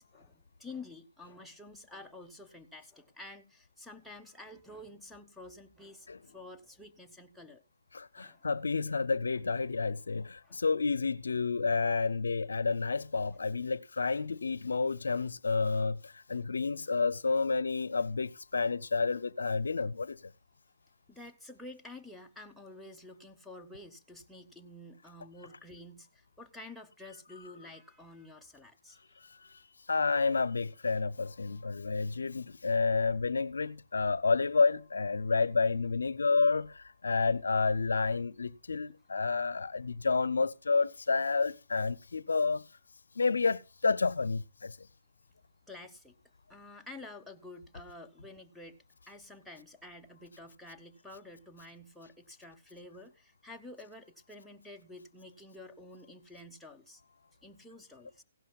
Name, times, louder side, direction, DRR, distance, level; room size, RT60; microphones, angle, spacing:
voice 1, 0.0-7.6 8.2-8.5 10.4-10.6 21.1-29.2 45.7-46.1 46.5-57.0 57.4-58.2, left 2 dB, ahead, 0.7 m, -50 dB
voice 2, 7.9-20.3 29.9-42.6 43.2-44.8, left 4 dB, 90° left, 0.5 m, -30 dB
16.0 x 11.5 x 2.3 m
hypercardioid pair, 150°, 0 cm